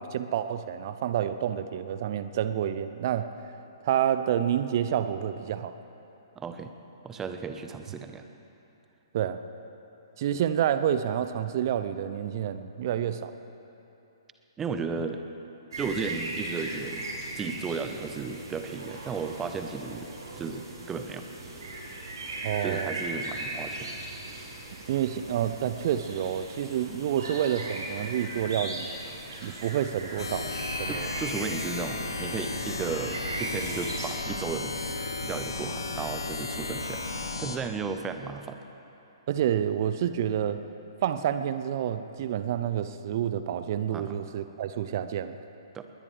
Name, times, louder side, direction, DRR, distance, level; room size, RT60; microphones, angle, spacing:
voice 1, 0.0-3.3 3.8-5.7 9.1-9.4 10.2-13.3 22.4-22.9 24.9-28.9 29.4-30.5 30.8-31.1 39.3-40.6 41.0-45.4, right 10 dB, 45° right, 11 dB, 0.7 m, -28 dB
voice 2, 6.4-6.7 7.0-8.2 14.6-15.2 15.8-17.1 17.3-20.1 20.4-21.2 22.6-23.9 29.5-29.6 30.9-37.0 37.4-38.6 43.9-44.1 45.7-45.8, right 5 dB, 15° right, 7 dB, 0.9 m, -34 dB
sound 1, 15.7-34.1, right 2 dB, 65° right, 4.5 m, -38 dB
sound 2, 30.2-37.6, left 3 dB, 70° left, 1.4 m, -34 dB
21.0 x 19.5 x 3.4 m, 3.0 s
figure-of-eight pair, 120°, 2 cm